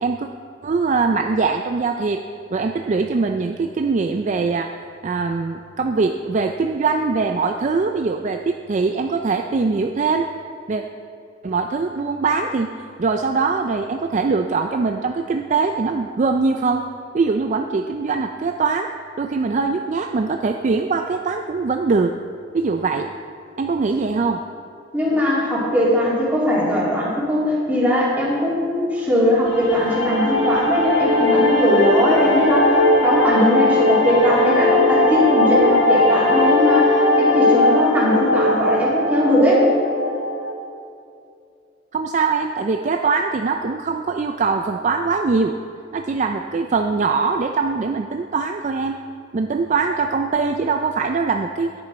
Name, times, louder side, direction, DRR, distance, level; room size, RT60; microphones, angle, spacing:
voice 1, 0.6-2.2 2.5-4.7 5.0-10.3 10.7-10.8 11.4-12.7 13.0-16.8 17.1-18.9 19.2-22.1 22.5-23.1 23.6-24.4 41.9-45.6 45.9-49.0 49.3-51.7, right 4 dB, 40° right, 5 dB, 0.3 m, -22 dB
voice 2, 24.9-32.8 33.0-39.6, equal, 10° right, -7 dB, 2.7 m, -19 dB
sound 1, 29.5-40.5, left 2 dB, 80° left, 1.3 m, -18 dB
10.0 x 10.0 x 4.2 m, 2.4 s
head